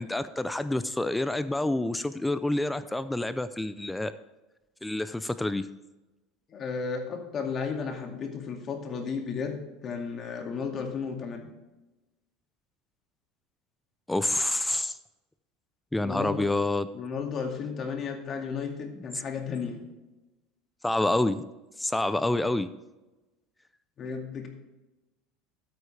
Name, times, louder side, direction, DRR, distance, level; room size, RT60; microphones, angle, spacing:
voice 1, 0.0-4.1 4.8-5.7 14.1-15.0 15.9-16.9 20.8-21.4 21.8-22.7, left 2 dB, 5° left, 13 dB, 0.4 m, -28 dB
voice 2, 6.5-11.5 16.0-16.5 16.9-19.8 24.0-24.5, left 5 dB, 35° left, 3 dB, 2.1 m, -34 dB
12.5 x 9.5 x 3.3 m, 1.1 s
supercardioid pair, 135°, 0 cm